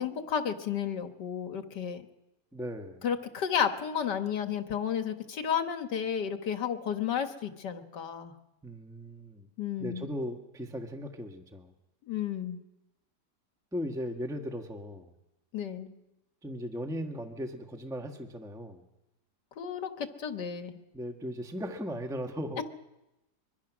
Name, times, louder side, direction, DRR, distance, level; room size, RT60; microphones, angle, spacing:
voice 1, 0.0-2.0 3.0-8.3 9.6-10.1 12.1-12.6 15.5-15.9 19.6-20.8 22.6-22.7, left 8 dB, 85° left, 7 dB, 2.0 m, -32 dB
voice 2, 2.5-3.1 8.6-9.5 9.8-11.7 13.7-15.2 16.4-18.9 20.9-22.6, equal, ahead, 4 dB, 1.4 m, -37 dB
24.5 x 23.0 x 6.2 m, 0.96 s
omnidirectional pair, 1.8 m